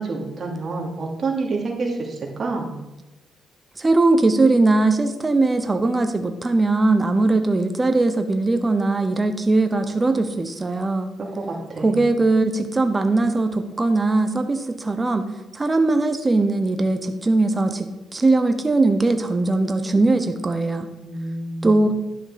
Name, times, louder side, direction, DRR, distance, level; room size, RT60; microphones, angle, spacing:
voice 1, 0.0-2.7 11.2-12.1 21.0-21.7, right 3 dB, 40° right, -2 dB, 2.9 m, -28 dB
voice 2, 3.8-11.1 11.8-15.2 15.5-20.9 21.6-21.9, right 2 dB, 20° right, 7 dB, 1.0 m, -20 dB
11.0 x 6.2 x 5.2 m, 1.0 s
cardioid pair, 90°, 0 cm